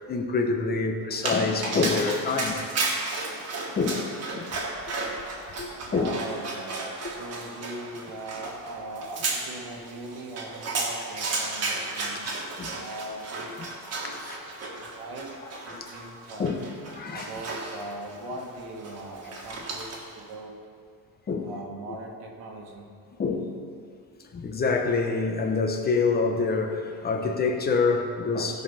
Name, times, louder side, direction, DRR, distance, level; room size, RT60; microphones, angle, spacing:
voice 1, 0.1-2.7 3.8-4.1 4.3-4.5 5.6-6.1 12.1-12.8 13.6-13.7 14.0-14.4 15.7-15.9 16.4-16.6 16.9-17.3 21.3-21.5 23.2-23.5 24.3-28.6, left 4 dB, 25° left, 4 dB, 0.9 m, -26 dB
Dog, 1.1-20.2, right 3 dB, 40° right, 1.7 m, -34 dB
voice 2, 5.8-12.4 12.7-13.7 14.0-14.4 14.8-16.5 17.1-20.6 21.4-22.9, right 2 dB, 90° right, 0 dB, 1.8 m, -40 dB
16.0 x 5.4 x 5.7 m, 2.2 s
cardioid pair, 170°, 37 cm